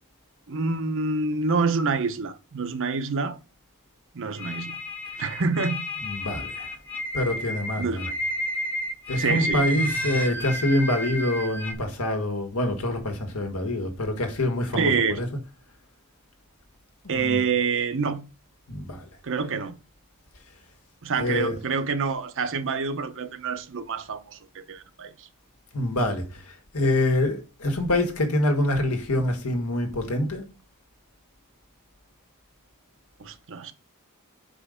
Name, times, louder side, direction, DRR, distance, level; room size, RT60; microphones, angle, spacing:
voice 1, 0.5-3.4 4.1-4.8 5.2-5.9 7.8-8.2 9.2-9.7 14.7-15.2 17.1-18.2 19.2-19.7 21.0-25.1 33.2-33.7, right 4 dB, 60° right, 0.7 m, -27 dB
sound 1, 4.4-11.7, left 1 dB, 10° left, 0.8 m, -31 dB
voice 2, 6.0-6.7 7.1-8.1 9.1-15.3 17.0-17.4 18.7-19.0 21.2-21.6 25.7-26.4 26.7-30.4, left 1 dB, 80° left, 1.6 m, -26 dB
5.3 x 5.0 x 4.9 m
head